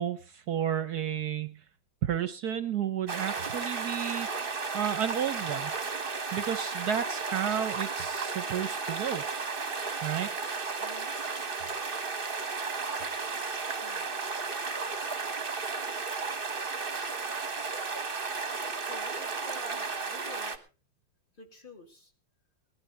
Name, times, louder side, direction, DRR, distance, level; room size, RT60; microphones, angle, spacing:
voice 1, 0.0-1.6 2.0-5.7 6.3-9.2 10.0-10.3, right 9 dB, 65° right, 11 dB, 1.3 m, -32 dB
sound 1, 3.1-20.6, right 4 dB, 30° right, 1.4 m, -34 dB
voice 2, 10.8-11.2 13.7-14.1 18.8-20.7 21.3-22.1, left 2 dB, 25° left, 3 dB, 3.0 m, -49 dB
19.0 x 12.0 x 4.3 m, 0.35 s
omnidirectional pair, 2.0 m